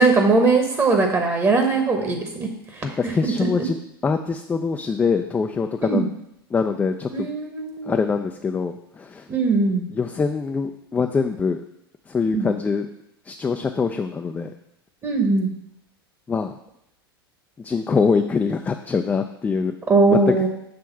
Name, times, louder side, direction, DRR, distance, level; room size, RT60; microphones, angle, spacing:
voice 1, 0.0-2.8 3.4-3.5 5.8-6.0 7.1-8.0 9.3-9.8 12.3-12.5 15.0-15.5 19.9-20.5, right 3 dB, 20° right, 3 dB, 1.0 m, -20 dB
voice 2, 2.8-3.8 4.0-6.1 6.5-7.3 7.8-9.3 9.9-11.6 12.1-12.9 13.2-14.5 16.3-16.6 17.6-19.8 20.1-20.5, left 5 dB, 10° left, 5 dB, 0.3 m, -24 dB
6.4 x 3.4 x 5.7 m, 0.80 s
figure-of-eight pair, 90°, 13 cm